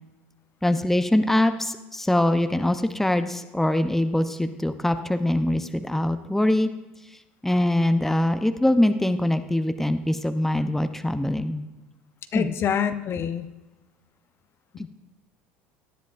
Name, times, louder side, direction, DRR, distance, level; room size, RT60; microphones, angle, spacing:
voice 1, 0.6-6.7 7.4-11.6 12.3-12.5 14.8-14.9, left 1 dB, 5° left, 9 dB, 0.7 m, -23 dB
voice 2, 12.3-13.5 14.7-14.9, left 8 dB, 45° left, 9 dB, 0.7 m, -26 dB
18.0 x 10.0 x 2.6 m, 1.1 s
hypercardioid pair, 75°, 6 cm